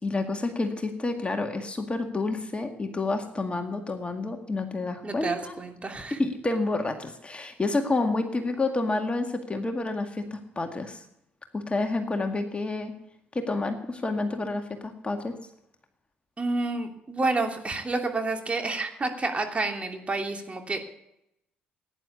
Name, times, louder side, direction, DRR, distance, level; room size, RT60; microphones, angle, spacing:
voice 1, 0.0-5.5 6.2-11.0 11.5-12.9 13.3-15.3, left 3 dB, 20° left, 5 dB, 2.0 m, -29 dB
voice 2, 5.0-6.2 16.4-20.8, right 3 dB, 25° right, 3 dB, 2.9 m, -29 dB
17.5 x 10.0 x 8.3 m, 0.80 s
figure-of-eight pair, 45°, 5 cm